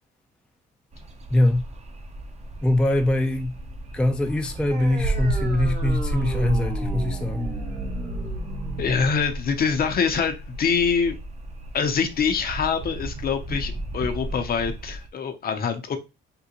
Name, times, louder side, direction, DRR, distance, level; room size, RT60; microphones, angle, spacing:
sound 1, 0.9-15.1, right 1 dB, 35° right, 0.6 m, -38 dB
voice 1, 1.3-1.7 2.6-3.6 3.9-7.5, left 1 dB, 5° left, 0.4 m, -23 dB
sound 2, 4.7-11.7, right 2 dB, 60° right, 1.5 m, -37 dB
sound 3, 5.0-15.1, right 1 dB, 85° right, 0.5 m, -32 dB
voice 2, 8.8-11.2 11.7-16.0, left 6 dB, 50° left, 0.6 m, -24 dB
3.6 x 2.2 x 2.8 m
cardioid pair, 90°, 20 cm